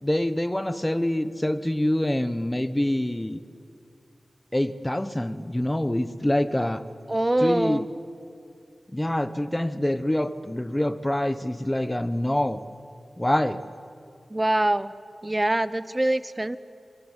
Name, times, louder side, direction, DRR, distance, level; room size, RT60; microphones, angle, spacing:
voice 1, 0.0-3.4 4.5-6.8 7.4-7.8 8.9-12.6 13.2-13.6, left 1 dB, 15° left, 13 dB, 1.1 m, -25 dB
voice 2, 7.1-7.9 14.3-14.9 15.2-16.6, right 1 dB, 20° right, 16 dB, 0.9 m, -24 dB
28.0 x 23.5 x 8.2 m, 2.6 s
wide cardioid pair, 75°, 0 cm